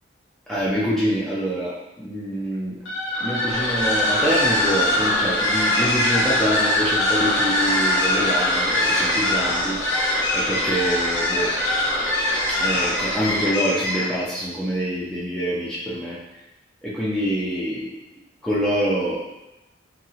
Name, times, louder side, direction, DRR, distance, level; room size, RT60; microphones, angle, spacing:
voice 1, 0.5-2.8 3.2-9.8 10.3-11.5 12.6-16.2 16.8-17.9 18.4-19.2, equal, ahead, -9 dB, 0.4 m, -25 dB
sound 1, 2.8-14.2, left 1 dB, 90° left, 0.9 m, -22 dB
2.8 x 2.7 x 2.7 m, 0.97 s
head